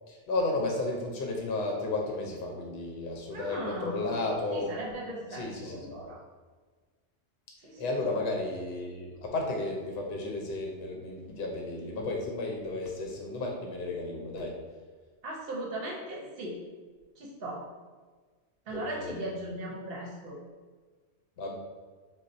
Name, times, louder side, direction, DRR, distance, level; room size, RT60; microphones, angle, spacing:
voice 1, 0.1-4.8 5.3-5.8 7.8-14.6 18.7-19.1 21.4-21.6, left 2 dB, 70° left, 0 dB, 0.8 m, -33 dB
voice 2, 3.3-4.1 4.5-6.2 7.6-8.0 15.2-16.6 17.2-17.7 18.7-20.4, right 1 dB, 65° right, -2 dB, 0.8 m, -38 dB
4.0 x 2.2 x 2.5 m, 1.4 s
omnidirectional pair, 1.2 m